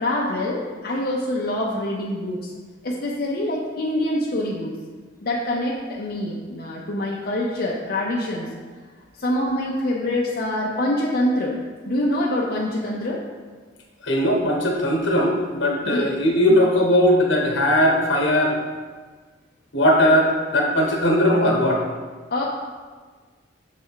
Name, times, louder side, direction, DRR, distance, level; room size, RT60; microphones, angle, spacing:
voice 1, 0.0-2.5 2.8-4.7 5.2-8.5 9.2-11.5 11.9-13.2 15.9-16.1 22.3-22.4, left 1 dB, 55° left, -4 dB, 0.6 m, -25 dB
voice 2, 14.0-18.6 19.7-21.8, equal, 75° left, 0 dB, 1.2 m, -19 dB
6.8 x 3.3 x 4.6 m, 1.5 s
head